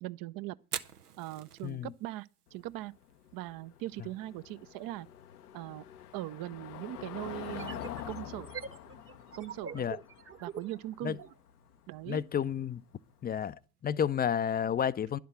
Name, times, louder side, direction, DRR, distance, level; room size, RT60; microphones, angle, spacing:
voice 1, 0.0-0.6 1.2-2.9 3.3-5.1 5.5-5.8 6.1-8.5 9.4-9.8 10.4-11.2 11.9-12.2, right 16 dB, 50° right, 0.7 m, -40 dB
Fire, 0.6-14.5, right 8 dB, 90° right, 0.7 m, -52 dB
Car passing by / Engine, 2.5-13.1, left 11 dB, 80° left, 0.8 m, -47 dB
sound 1, 7.4-11.4, right 6 dB, 30° right, 1.0 m, -45 dB
voice 2, 12.1-12.8 13.2-15.2, left 8 dB, 20° left, 0.5 m, -31 dB
11.0 x 6.0 x 8.4 m
figure-of-eight pair, 60°, 45 cm